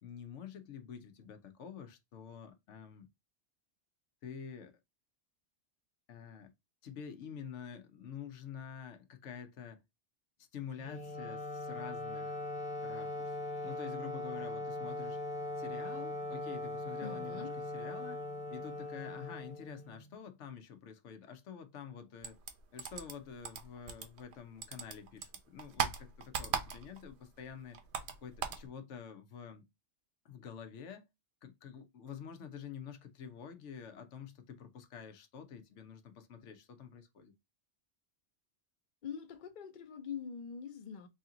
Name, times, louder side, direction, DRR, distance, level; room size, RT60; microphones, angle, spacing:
voice 1, 0.0-3.1 4.2-4.7 6.1-6.5 6.8-9.8 10.4-12.4 12.8-13.3 13.6-15.2 15.6-18.2 18.5-22.4 22.7-27.8 28.2-29.6 30.2-31.1 31.4-37.3, left 7 dB, 80° left, 1.0 m, -48 dB
Wind instrument woodwind instrument, 10.8-20.1, left 2 dB, 10° left, 0.4 m, -40 dB
voice 2, 17.0-17.6 39.0-41.1, left 7 dB, 50° left, 0.7 m, -44 dB
sound 1, 22.2-24.4 24.6-27.1 27.4-28.7, right 7 dB, 70° right, 0.9 m, -38 dB
3.3 x 2.8 x 3.7 m
omnidirectional pair, 1.2 m